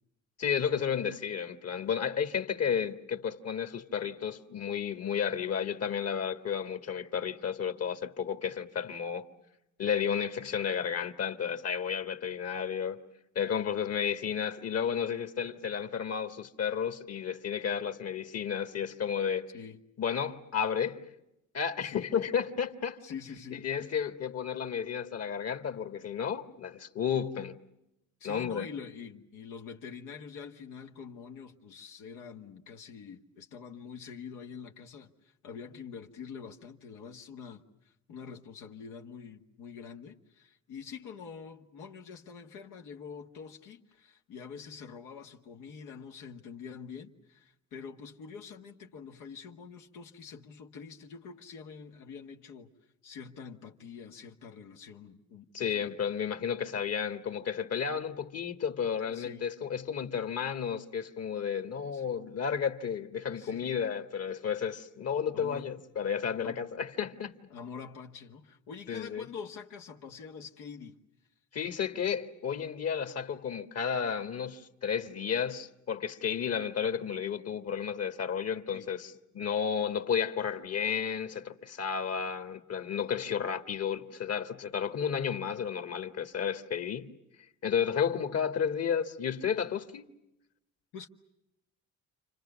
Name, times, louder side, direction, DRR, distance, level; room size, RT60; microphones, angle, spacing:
voice 1, 0.4-9.3 9.8-13.0 13.4-19.5 20.0-21.0 21.5-23.0 23.5-27.6 28.2-28.7 55.5-67.3 68.9-69.3 71.5-87.1 87.6-90.1, left 7 dB, 55° left, 1.8 m, -32 dB
voice 2, 21.8-22.3 23.0-24.0 28.2-52.7 53.0-56.0 59.1-59.4 61.9-62.1 63.3-63.8 64.3-64.4 65.3-65.7 66.4-66.7 67.5-71.0 78.7-78.9 90.9-91.1, left 6 dB, 90° left, 1.7 m, -46 dB
30.0 x 26.0 x 7.0 m
cardioid pair, 90°, 30 cm